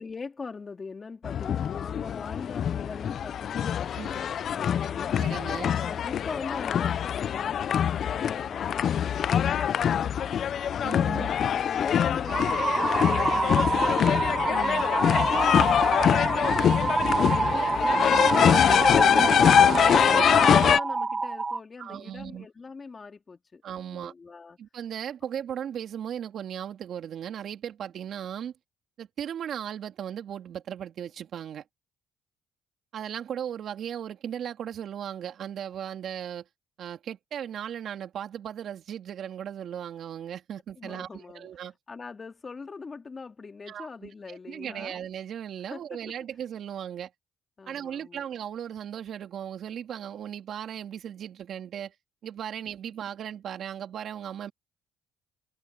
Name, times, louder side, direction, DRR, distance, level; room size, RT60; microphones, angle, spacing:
voice 1, 0.0-5.2 5.8-10.5 11.1-14.3 14.9-19.3 19.7-23.6 23.9-24.6 40.8-41.5 41.9-45.0 45.7-45.8 47.6-48.3, left 4 dB, 30° left, 3.2 m, -42 dB
sound 1, 1.2-20.8, left 9 dB, 55° left, 0.5 m, -24 dB
voice 2, 5.2-5.7 10.8-11.3 14.5-14.8 19.0-19.8 21.8-22.5 23.6-24.1 24.6-28.5 29.0-31.6 32.9-36.4 36.8-41.7 43.7-47.1 47.7-51.9 52.2-54.5, right 9 dB, 60° right, 2.9 m, -37 dB
sound 2, 12.3-21.6, right 4 dB, 25° right, 0.5 m, -27 dB
cardioid pair, 85°, 0 cm